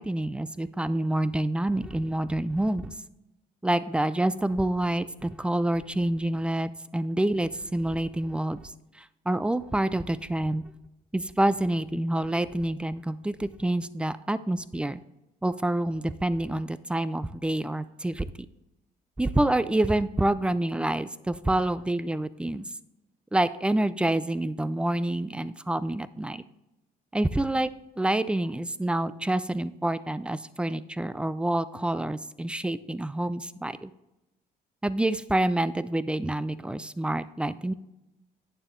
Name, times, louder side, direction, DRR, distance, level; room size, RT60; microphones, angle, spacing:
voice 1, 0.0-2.9 3.6-8.7 9.0-10.6 11.1-15.0 15.4-18.3 19.2-22.6 23.3-26.4 27.1-27.7 28.0-33.9 34.8-37.7, right 1 dB, 5° right, 15 dB, 0.3 m, -27 dB
9.0 x 7.0 x 3.8 m, 0.94 s
cardioid pair, 110°, 17 cm